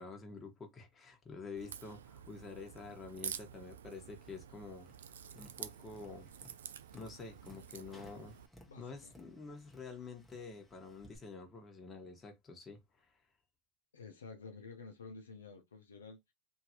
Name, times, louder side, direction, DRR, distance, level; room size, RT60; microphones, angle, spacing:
voice 1, 0.0-4.9 5.3-6.3 6.9-8.4 8.8-13.1, left 4 dB, 25° left, 1.3 m, -48 dB
Crack, 1.6-8.5, right 9 dB, 85° right, 0.3 m, -49 dB
Tap, 4.8-11.2, equal, ahead, 1.0 m, -61 dB
voice 2, 8.7-9.1 13.9-16.3, left 4 dB, 90° left, 0.7 m, -51 dB
2.9 x 2.7 x 3.0 m
hypercardioid pair, 95°, 0 cm